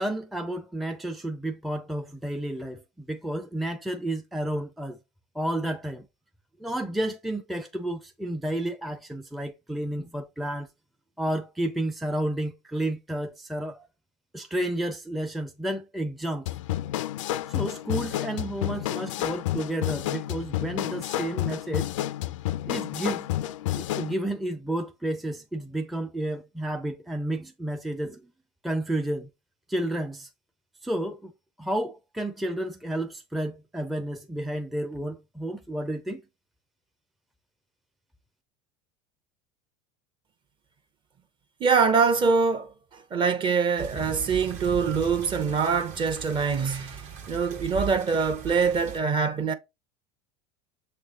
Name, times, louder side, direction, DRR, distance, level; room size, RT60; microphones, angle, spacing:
voice 1, 0.0-5.0 5.3-6.1 6.6-10.7 11.2-13.9 14.3-16.5 17.5-21.9 22.7-23.3 23.8-28.3 28.6-29.3 29.7-30.3 30.8-31.3 31.6-36.2, right 1 dB, ahead, 0.5 m, -31 dB
sound 1, 16.5-24.1, left 13 dB, 90° left, 0.4 m, -30 dB
voice 2, 41.6-49.5, right 5 dB, 30° right, 0.9 m, -24 dB
sound 2, 43.8-49.0, right 7 dB, 50° right, 1.3 m, -39 dB
6.5 x 3.2 x 2.3 m
supercardioid pair, 105°, 16 cm